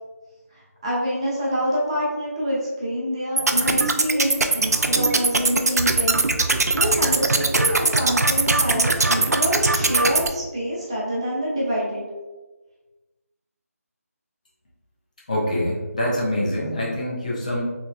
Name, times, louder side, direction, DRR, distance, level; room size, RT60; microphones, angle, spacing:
voice 1, 0.5-12.0, equal, 20° right, -6 dB, 0.6 m, -26 dB
sound 1, 3.4-10.3, right 3 dB, 85° right, 0.4 m, -21 dB
voice 2, 15.3-17.6, left 1 dB, 30° left, -5 dB, 0.6 m, -25 dB
4.0 x 3.1 x 2.2 m, 1.2 s
figure-of-eight pair, 170°, 8 cm